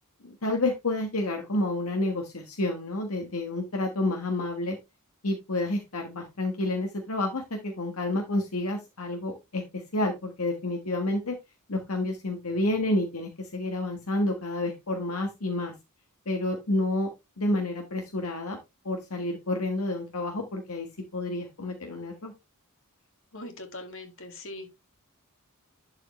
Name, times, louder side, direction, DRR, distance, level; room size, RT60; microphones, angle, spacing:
voice 1, 0.2-4.8 5.2-11.4 11.7-15.7 16.2-17.1 17.4-18.6 18.8-22.3, left 2 dB, 80° left, 1.5 m, -29 dB
voice 2, 23.3-24.7, left 1 dB, 60° left, 2.2 m, -41 dB
11.5 x 4.8 x 3.1 m
head